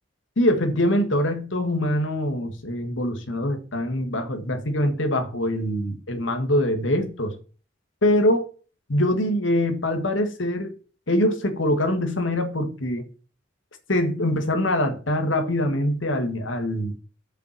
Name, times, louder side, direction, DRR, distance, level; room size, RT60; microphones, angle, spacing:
voice 1, 0.4-7.3 8.0-8.5 8.9-10.7 11.1-13.1 13.9-16.9, left 1 dB, 80° left, 1.6 m, -23 dB
6.5 x 5.4 x 7.1 m
head